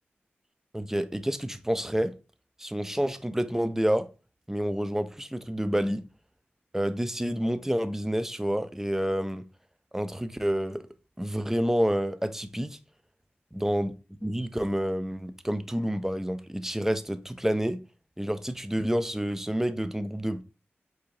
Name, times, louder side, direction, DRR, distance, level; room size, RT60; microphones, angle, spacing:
voice 1, 0.7-2.1 2.6-4.1 4.5-6.0 6.7-9.4 9.9-10.8 11.2-12.8 13.6-13.9 14.2-17.8 18.2-20.4, equal, 10° right, 0.5 m, -28 dB
4.6 x 2.7 x 3.2 m
cardioid pair, 40°, 4 cm